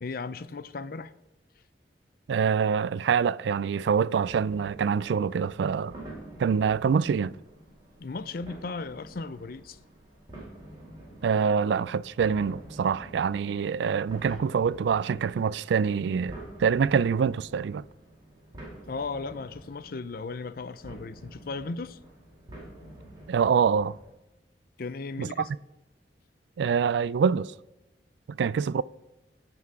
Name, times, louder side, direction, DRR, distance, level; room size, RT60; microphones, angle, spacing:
voice 1, 0.0-1.1 8.0-9.8 18.9-22.0 24.8-25.5, left 4 dB, 55° left, 0.5 m, -36 dB
voice 2, 2.3-5.9 6.4-7.4 11.2-17.8 23.3-24.0 25.2-25.3 26.6-27.5 28.3-28.8, right 6 dB, 80° right, 0.3 m, -25 dB
sound 1, 4.2-24.1, right 1 dB, 25° right, 4.0 m, -48 dB
16.5 x 5.9 x 4.8 m
head